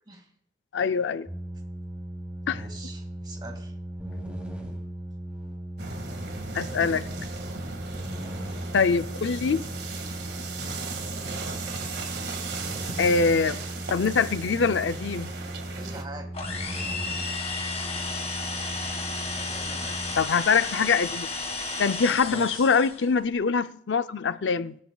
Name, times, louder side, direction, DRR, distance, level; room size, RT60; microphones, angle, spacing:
voice 1, 0.7-1.3 2.5-2.6 6.5-7.0 8.7-9.6 13.0-13.6 13.9-15.3 20.2-21.3 21.8-24.8, left 5 dB, 80° left, 0.5 m, -24 dB
sound 1, 1.3-20.1, right 1 dB, 5° right, 3.0 m, -37 dB
voice 2, 2.5-3.7 15.8-16.4 19.4-20.0 22.3-22.7, right 1 dB, 25° right, 2.2 m, -43 dB
sound 2, 5.8-16.0, right 4 dB, 65° right, 1.9 m, -37 dB
sound 3, 16.3-23.1, left 3 dB, 35° left, 1.9 m, -33 dB
21.0 x 10.5 x 2.4 m
head